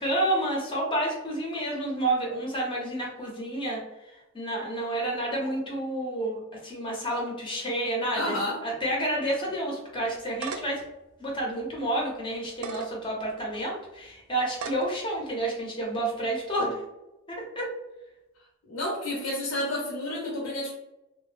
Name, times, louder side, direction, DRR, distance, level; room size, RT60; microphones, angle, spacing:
voice 1, 0.0-3.8 4.3-10.8 11.2-16.8 17.3-17.7, right 1 dB, 25° left, -2 dB, 0.6 m, -30 dB
voice 2, 8.1-8.6 18.7-20.7, left 1 dB, 85° left, -3 dB, 0.6 m, -30 dB
sound 1, 10.1-10.8 11.4-11.5 12.5-12.9 13.5-13.6 14.5-14.9, right 5 dB, 90° right, 0.3 m, -36 dB
2.1 x 2.0 x 3.2 m, 0.97 s
head